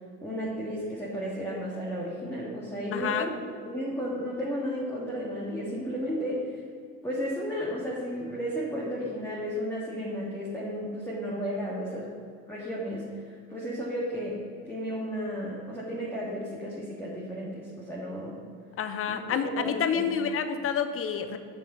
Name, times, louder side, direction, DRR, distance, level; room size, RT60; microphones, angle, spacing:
voice 1, 0.2-6.4 7.0-12.1 12.5-14.4 14.7-18.4 19.1-20.2, equal, 5° left, -6 dB, 1.8 m, -33 dB
voice 2, 2.9-3.3 18.8-21.4, left 7 dB, 30° left, 9 dB, 0.8 m, -28 dB
6.9 x 5.6 x 6.8 m, 2.2 s
hypercardioid pair, 80°, 46 cm